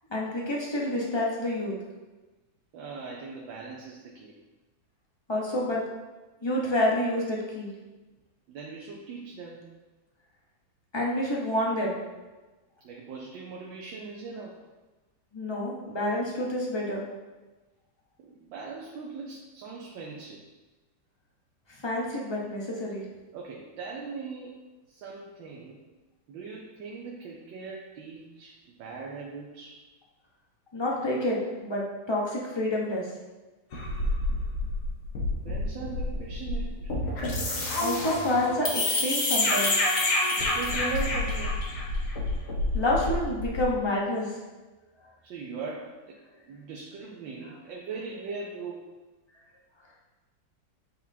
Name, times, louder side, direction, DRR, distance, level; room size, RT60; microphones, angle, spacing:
voice 1, 0.1-1.8 5.3-5.8 6.4-7.7 10.9-12.0 15.3-17.0 21.7-23.0 30.7-33.1 37.8-39.8 42.7-44.4, left 1 dB, 25° left, -4 dB, 0.6 m, -28 dB
voice 2, 2.7-4.3 8.5-9.6 12.8-14.6 18.2-20.4 23.3-24.6 24.9-25.8 26.3-29.8 35.4-36.9 40.2-41.6 45.2-46.2 46.4-48.9, right 4 dB, 80° right, -2 dB, 1.5 m, -40 dB
sound 1, 33.7-43.8, left 2 dB, 60° left, 1.7 m, -28 dB
8.6 x 4.3 x 2.7 m, 1.2 s
omnidirectional pair, 2.1 m